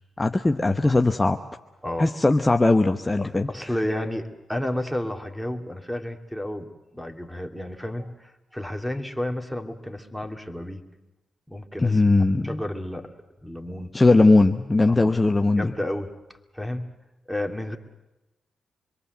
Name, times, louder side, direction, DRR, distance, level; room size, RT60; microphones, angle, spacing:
voice 1, 0.2-1.4 2.0-3.5 11.8-12.6 13.9-15.7, left 2 dB, 25° left, 5 dB, 1.1 m, -19 dB
voice 2, 3.2-6.7 6.9-10.8 11.5-12.0 12.4-13.1 13.4-14.0 14.9-15.2 15.6-16.1 16.5-16.9 17.3-17.8, left 1 dB, ahead, 3 dB, 2.7 m, -31 dB
26.0 x 22.5 x 8.0 m, 1.0 s
hypercardioid pair, 40°, 0 cm